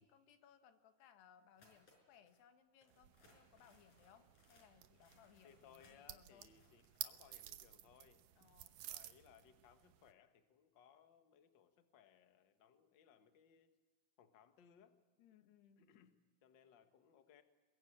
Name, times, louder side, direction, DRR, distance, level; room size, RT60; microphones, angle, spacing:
voice 1, 0.0-6.5 8.4-8.8 15.2-15.9, left 8 dB, 90° left, 8 dB, 3.6 m, -67 dB
sound 1, 1.6-2.4 2.8-7.1, left 2 dB, 50° left, 6.5 m, -71 dB
sound 2, 2.9-10.1, right 13 dB, 70° right, 2.2 m, -54 dB
voice 2, 5.4-8.2 8.8-13.7 14.2-15.0 15.8-16.1 16.4-17.4, left 8 dB, 65° left, 8 dB, 1.1 m, -66 dB
22.5 x 22.5 x 8.8 m, 1.4 s
omnidirectional pair, 4.6 m